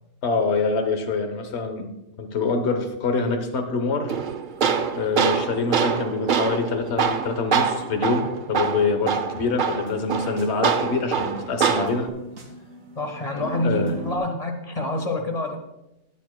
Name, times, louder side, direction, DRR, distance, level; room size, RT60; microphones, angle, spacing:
voice 1, 0.2-1.9 2.2-4.1 4.9-12.1 13.6-13.9, left 4 dB, 55° left, 6 dB, 1.3 m, -25 dB
Tools, 4.1-12.1, right 6 dB, 50° right, 0.7 m, -25 dB
sound 1, 4.5-14.2, right 2 dB, 70° right, 2.3 m, -42 dB
voice 2, 12.9-15.6, left 1 dB, 30° left, 3 dB, 1.4 m, -27 dB
20.0 x 7.2 x 2.2 m, 0.91 s
omnidirectional pair, 1.4 m